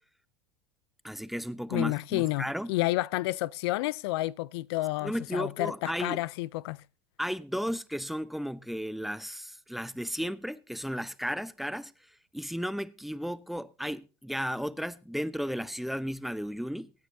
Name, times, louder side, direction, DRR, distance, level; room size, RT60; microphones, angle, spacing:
voice 1, 1.0-2.7 5.0-6.2 7.2-11.9 12.3-16.9, equal, ahead, 0.7 m, -34 dB
voice 2, 1.7-6.8, left 18 dB, 70° left, 0.5 m, -30 dB
24.0 x 9.5 x 2.7 m
hypercardioid pair, 100°, 14 cm